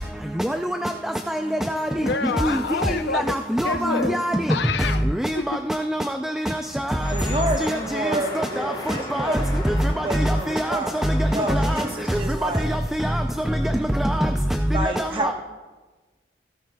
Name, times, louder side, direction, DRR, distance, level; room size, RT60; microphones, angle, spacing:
voice 1, 0.4-0.9 1.3-1.4 1.7-1.9 2.4-2.6 3.1-4.5 5.2-6.0 6.5-7.0 7.6-7.8 8.4-8.7 9.1-9.4 9.7-9.8 10.1-10.8 11.3-11.8 12.1-13.2 13.5-13.6 14.0-14.3 15.0-15.3, equal, 5° right, 5 dB, 0.3 m, -24 dB
voice 2, 1.9-3.4 3.6-4.2 4.5-5.1 5.3-5.6, left 4 dB, 85° left, 10 dB, 0.6 m, -27 dB
sound 1, 7.0-12.2, left 2 dB, 25° left, 2.0 m, -36 dB
voice 3, 7.1-10.9 11.3-12.7 14.7-15.3, right 1 dB, 30° right, 3 dB, 1.1 m, -29 dB
16.5 x 13.5 x 2.3 m, 1.3 s
head